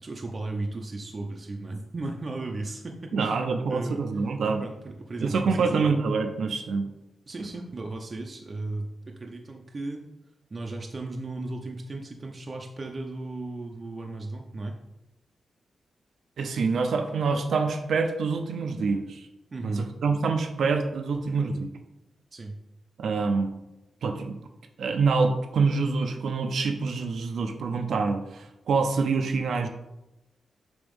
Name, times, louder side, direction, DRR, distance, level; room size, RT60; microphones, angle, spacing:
voice 1, 0.0-3.4 3.7-4.0 4.6-5.9 7.3-10.0 10.5-14.8 19.5-19.8 22.3-22.6, right 2 dB, 35° right, 1 dB, 0.6 m, -35 dB
voice 2, 3.1-4.6 5.2-6.9 16.4-19.2 19.6-21.7 23.0-23.5 24.0-24.4 24.8-29.7, right 4 dB, 75° right, 5 dB, 0.6 m, -26 dB
7.0 x 3.0 x 5.3 m, 0.94 s
wide cardioid pair, 115°, 0 cm